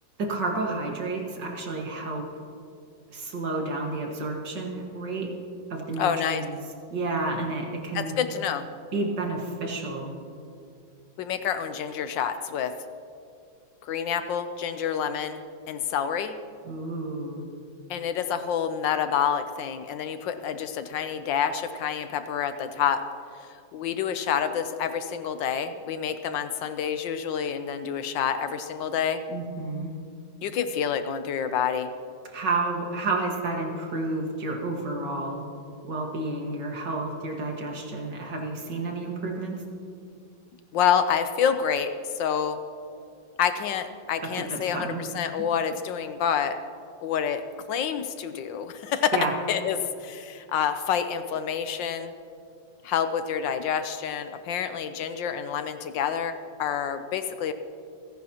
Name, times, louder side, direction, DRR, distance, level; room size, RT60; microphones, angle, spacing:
voice 1, 0.2-2.2 3.1-5.3 5.7-6.6 6.9-8.2 8.9-10.1 16.6-17.4 29.3-29.9 32.3-35.4 35.8-39.5 44.5-45.0 49.1-49.3, right 3 dB, 60° right, 0 dB, 2.4 m, -30 dB
voice 2, 6.0-6.4 7.9-8.6 11.2-12.7 13.8-15.4 15.7-16.4 17.9-23.0 23.7-29.2 30.4-31.9 40.7-41.9 42.2-42.6 43.4-46.6 47.0-49.1 49.5-52.1 52.8-57.5, left 8 dB, 75° left, 10 dB, 1.3 m, -28 dB
29.0 x 10.5 x 2.9 m, 2.4 s
omnidirectional pair, 2.1 m